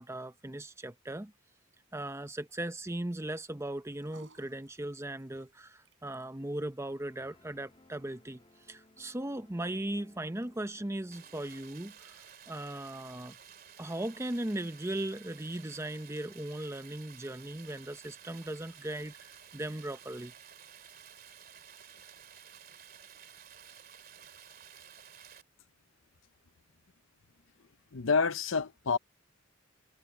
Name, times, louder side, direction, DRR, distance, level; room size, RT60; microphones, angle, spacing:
voice 1, 0.0-1.3 1.9-8.4 8.7-13.4 13.8-20.3, right 1 dB, 15° right, 0.8 m, -38 dB
sound 1, 3.7-20.2, right 2 dB, 65° right, 7.1 m, -68 dB
sound 2, 6.8-11.9, left 1 dB, 25° left, 2.7 m, -62 dB
Stream, 11.1-25.4, right 8 dB, 45° right, 2.5 m, -53 dB
voice 2, 27.9-29.0, left 5 dB, 75° left, 0.8 m, -28 dB
head